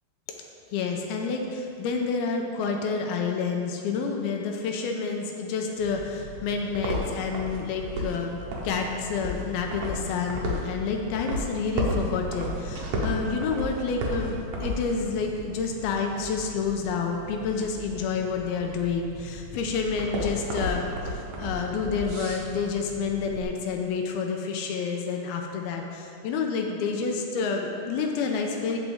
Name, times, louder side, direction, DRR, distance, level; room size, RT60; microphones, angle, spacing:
voice 1, 0.7-28.8, left 5 dB, 85° left, 2 dB, 2.4 m, -29 dB
sound 1, 5.8-23.4, equal, 65° right, 2.4 m, -34 dB
15.5 x 5.2 x 3.5 m, 2.6 s
omnidirectional pair, 4.6 m